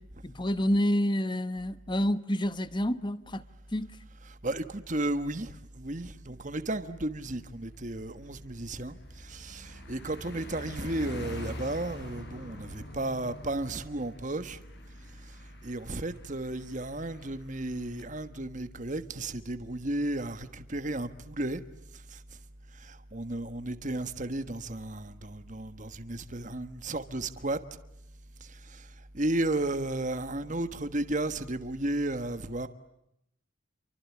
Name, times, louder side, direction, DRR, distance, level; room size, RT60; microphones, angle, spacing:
voice 1, 0.2-3.4 3.7-3.9, equal, 20° left, 1.1 m, -28 dB
voice 2, 4.2-14.6 15.2-21.6 21.9-22.2 22.7-27.6 28.4-32.7, right 1 dB, 40° right, 1.4 m, -34 dB
Car passing by, 6.5-6.7 7.1-18.1, left 1 dB, 55° left, 5.6 m, -45 dB
28.5 x 24.5 x 8.5 m
head